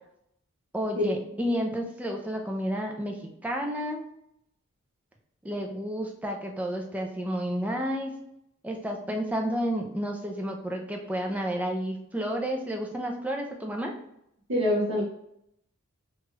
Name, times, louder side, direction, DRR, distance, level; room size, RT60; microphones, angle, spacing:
voice 1, 0.7-3.2 3.4-4.0 5.4-8.2 8.6-13.9, equal, 5° right, 1 dB, 0.3 m, -31 dB
voice 2, 14.5-15.0, left 1 dB, 65° right, -8 dB, 0.9 m, -24 dB
2.9 x 2.3 x 3.0 m, 0.76 s
head